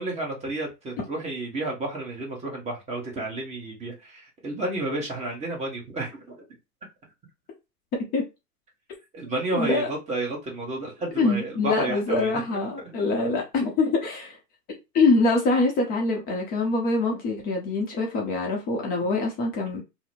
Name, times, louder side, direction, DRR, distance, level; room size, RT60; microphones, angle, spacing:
voice 1, 0.0-6.4 9.1-13.0, right 2 dB, 15° right, 1.0 m, -31 dB
voice 2, 9.5-9.9 11.2-14.4 14.9-19.8, left 3 dB, 20° left, 0.7 m, -24 dB
2.9 x 2.1 x 4.1 m
hypercardioid pair, 120°, 49 cm